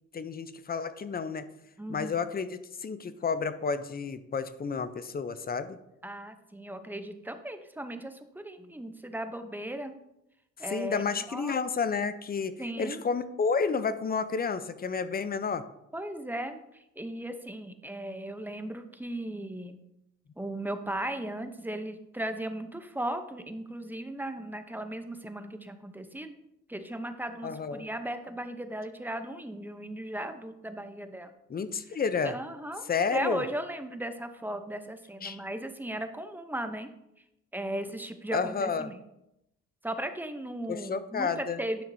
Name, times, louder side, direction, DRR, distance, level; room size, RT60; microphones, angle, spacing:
voice 1, 0.1-1.5 1.9-5.8 10.7-15.6 27.4-27.9 31.5-32.3 32.9-33.4 35.2-35.4 38.3-38.9 40.7-41.6, left 5 dB, 30° left, 12 dB, 0.6 m, -31 dB
voice 2, 1.8-2.2 6.0-9.9 10.6-11.5 12.6-13.0 15.9-19.8 20.4-26.3 26.7-31.3 32.2-32.8 33.1-36.9 37.5-39.0 39.8-41.8, right 1 dB, 5° right, 8 dB, 0.7 m, -37 dB
10.0 x 6.0 x 2.7 m, 0.84 s
cardioid pair, 90°, 30 cm